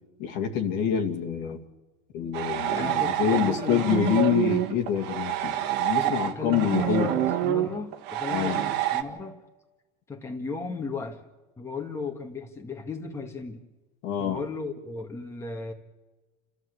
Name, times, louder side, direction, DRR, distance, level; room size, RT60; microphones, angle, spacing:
voice 1, 0.2-1.6 2.1-7.1 8.3-8.6 14.0-14.4, left 8 dB, 60° left, 2.4 m, -26 dB
sound 1, 2.3-9.0, right 12 dB, 55° right, 1.8 m, -27 dB
voice 2, 2.8-4.2 6.0-9.5 10.1-11.2 11.6-13.6 14.2-15.7, left 4 dB, 15° left, 1.9 m, -36 dB
29.5 x 14.0 x 8.2 m
supercardioid pair, 140°, 21 cm